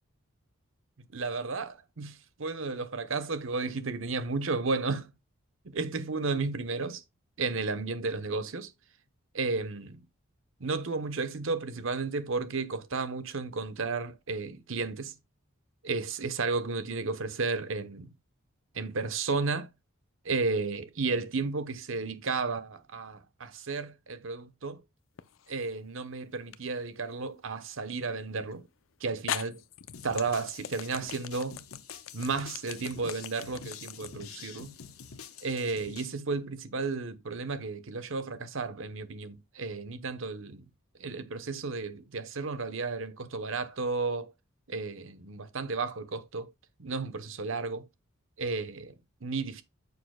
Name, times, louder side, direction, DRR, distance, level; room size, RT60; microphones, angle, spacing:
voice 1, 1.1-5.1 5.6-7.0 7.4-8.7 9.3-10.0 10.6-15.1 15.8-18.1 18.7-19.7 20.2-24.8 25.5-28.7 29.0-29.6 30.0-31.6 32.1-34.8 35.4-40.6 41.0-44.3 44.7-46.5 46.8-47.9 48.4-48.9 49.2-49.6, right 4 dB, 65° right, 0.9 m, -33 dB
sound 1, 25.2-25.8 26.5-26.6 28.5-28.6 29.3-35.5, left 9 dB, 65° left, 0.5 m, -39 dB
sound 2, 29.9-36.1, left 6 dB, 80° left, 0.9 m, -47 dB
9.5 x 6.7 x 2.2 m
head